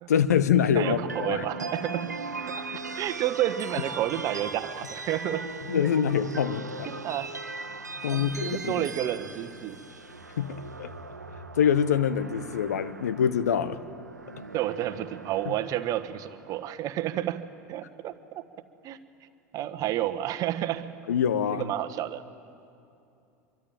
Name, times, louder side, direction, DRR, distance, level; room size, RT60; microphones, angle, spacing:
voice 1, 0.1-1.5 5.7-6.9 8.0-8.9 10.4-10.9 11.6-13.8 21.1-21.7, left 8 dB, 70° left, 14 dB, 1.0 m, -25 dB
voice 2, 0.7-2.2 2.9-5.9 6.9-7.3 8.1-9.8 14.5-18.4 18.8-19.0 19.5-21.0 21.5-22.2, right 12 dB, 40° right, 12 dB, 1.2 m, -31 dB
sound 1, 0.8-17.0, right 3 dB, 85° right, 1.1 m, -39 dB
25.0 x 24.0 x 9.1 m, 2.6 s
figure-of-eight pair, 80°, 9 cm